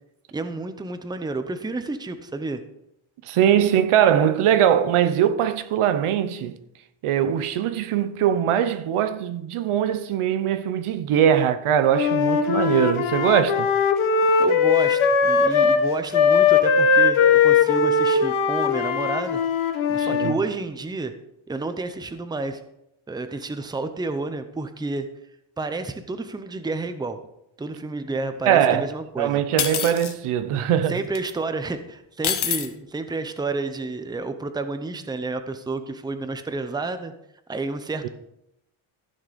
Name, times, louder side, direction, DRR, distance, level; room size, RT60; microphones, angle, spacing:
voice 1, 0.3-2.6 14.4-19.4 19.9-21.1 21.5-22.6 23.1-25.1 25.6-27.2 27.6-29.4 30.9-37.1 37.5-38.1, right 3 dB, 10° right, 0.6 m, -30 dB
voice 2, 3.2-6.6 7.0-13.7 20.0-20.4 28.5-28.9 29.2-31.0 38.0-38.1, right 9 dB, 85° right, 1.0 m, -21 dB
Wind instrument woodwind instrument, 11.9-15.8 16.1-20.4, left 5 dB, 80° left, 1.4 m, -19 dB
sound 1, 29.6-30.1 31.1-31.3 32.2-32.7, left 9 dB, 50° left, 1.1 m, -25 dB
14.5 x 6.4 x 5.1 m
cardioid pair, 160°, 49 cm